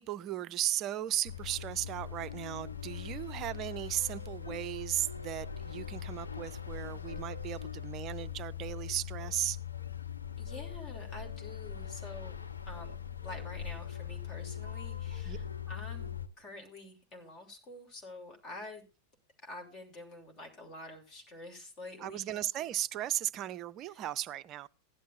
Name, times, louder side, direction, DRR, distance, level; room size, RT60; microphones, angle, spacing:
voice 1, 0.0-9.6 15.3-15.4 22.0-24.7, right 13 dB, 35° right, 0.4 m, -36 dB
sound 1, 1.2-16.3, left 8 dB, 75° left, 0.7 m, -41 dB
voice 2, 10.4-12.4 12.6-18.8 19.4-22.4 23.9-24.0, left 2 dB, 35° left, 3.1 m, -48 dB
16.0 x 11.0 x 2.5 m
figure-of-eight pair, 90°, 0 cm